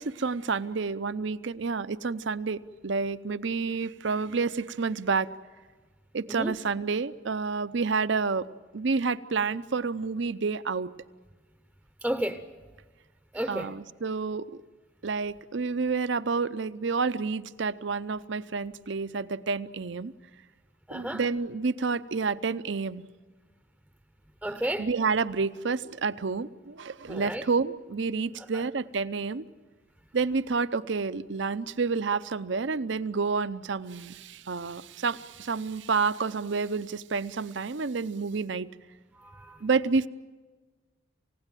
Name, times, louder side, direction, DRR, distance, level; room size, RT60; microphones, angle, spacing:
voice 1, 0.0-5.3 6.1-8.4 8.7-10.9 13.5-14.5 15.0-20.1 20.9-23.0 24.8-29.5 30.1-38.7 39.6-40.1, right 4 dB, 70° right, 15 dB, 0.6 m, -29 dB
voice 2, 12.0-12.4 13.3-13.7 20.9-21.2 24.4-24.9 27.1-27.4 28.5-28.6 39.2-39.6, right 1 dB, 5° right, 8 dB, 0.7 m, -32 dB
28.0 x 16.5 x 9.1 m, 1.4 s
head